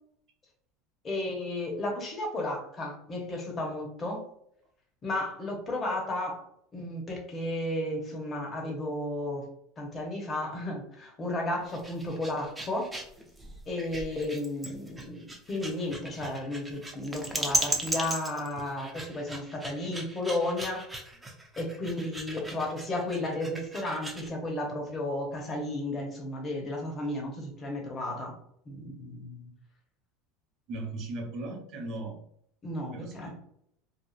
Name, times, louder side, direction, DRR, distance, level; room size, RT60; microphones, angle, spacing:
voice 1, 1.0-4.2 5.0-6.4 6.7-9.5 9.8-12.9 13.7-20.9 21.6-28.4 28.7-29.5 32.6-33.3, left 1 dB, 25° left, 0 dB, 0.8 m, -33 dB
sound 1, 11.6-24.3, right 1 dB, 10° right, 0.4 m, -36 dB
voice 2, 30.7-32.2 32.9-33.3, right 2 dB, 45° right, 1 dB, 0.8 m, -37 dB
2.8 x 2.3 x 2.4 m, 0.70 s
supercardioid pair, 135°, 0 cm